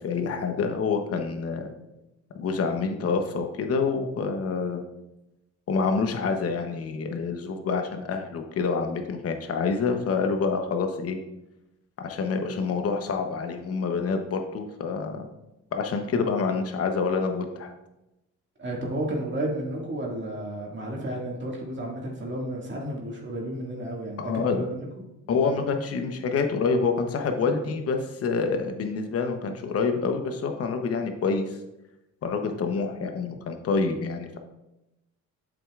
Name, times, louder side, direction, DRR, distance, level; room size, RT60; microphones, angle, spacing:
voice 1, 0.0-1.7 2.3-4.8 5.7-11.2 12.0-15.3 15.7-17.7 24.2-24.7 25.3-31.6 32.2-34.4, left 4 dB, 50° left, 5 dB, 0.9 m, -27 dB
voice 2, 18.6-24.9, right 1 dB, 40° right, -2 dB, 2.0 m, -32 dB
7.9 x 7.2 x 2.4 m, 0.94 s
cardioid pair, 90°, 30 cm